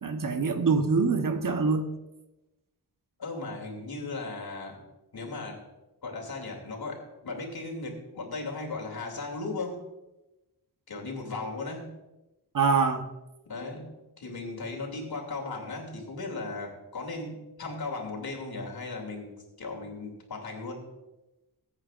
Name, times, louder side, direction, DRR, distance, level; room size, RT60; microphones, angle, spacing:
voice 1, 0.0-1.9 12.5-13.1, right 4 dB, 55° right, 6 dB, 1.1 m, -25 dB
voice 2, 3.2-4.8 5.1-5.6 6.0-9.8 10.9-11.9 13.4-13.8 14.2-20.9, left 3 dB, 70° left, 0 dB, 2.8 m, -37 dB
21.0 x 8.9 x 2.5 m, 1.0 s
wide cardioid pair, 90°, 39 cm